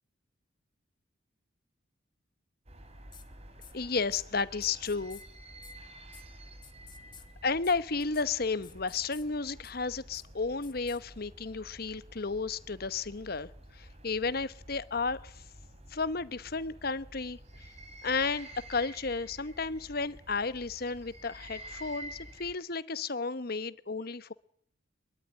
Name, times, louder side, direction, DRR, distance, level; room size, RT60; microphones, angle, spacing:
sound 1, 2.7-22.6, right 1 dB, 35° right, 3.4 m, -50 dB
sound 2, 3.1-3.2 3.6-3.7 4.1-4.2 4.6-5.2 5.6-5.7 6.1-6.2 6.6-7.2 7.6-7.7 8.0-8.2 8.6-9.2 9.6-9.7 10.1-10.2 10.6-11.0, left 8 dB, 25° left, 1.7 m, -52 dB
voice 1, 3.7-5.2 7.4-15.3 15.9-17.4 18.0-24.3, left 4 dB, 50° left, 1.0 m, -33 dB
23.5 x 22.0 x 9.8 m
head